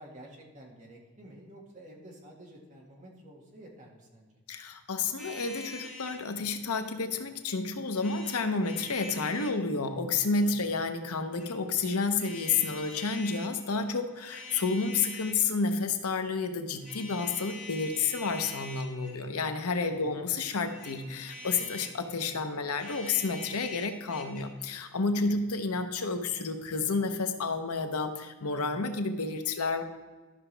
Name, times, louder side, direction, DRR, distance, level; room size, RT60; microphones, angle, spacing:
voice 1, 0.0-4.4 10.5-10.6 19.9-20.2, right 1 dB, 35° right, -2 dB, 1.8 m, -50 dB
voice 2, 4.5-29.8, left 4 dB, 90° left, 7 dB, 0.9 m, -30 dB
sound 1, 5.2-6.2 7.9-9.6 11.1-11.5 12.2-13.5 14.1-15.5 16.8-19.3 20.6-22.0 22.7-24.4, left 2 dB, 5° left, 2.3 m, -45 dB
12.5 x 6.0 x 3.3 m, 1.3 s
head